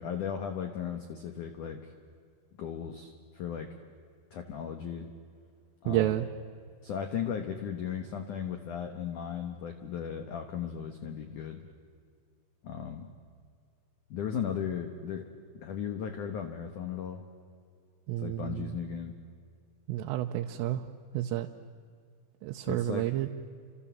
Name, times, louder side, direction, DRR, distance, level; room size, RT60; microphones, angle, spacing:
voice 1, 0.0-1.9 2.6-3.7 4.3-5.1 5.8-6.2 6.8-11.7 12.6-13.1 14.1-15.3 15.5-17.2 18.2-19.1 22.6-23.1, left 8 dB, 85° left, 6 dB, 1.7 m, -36 dB
voice 2, 5.9-6.3 18.1-18.8 19.9-20.9 21.1-21.5 22.4-23.3, right 14 dB, 85° right, 4 dB, 3.4 m, -30 dB
29.5 x 27.0 x 7.2 m, 2.3 s
omnidirectional pair, 5.7 m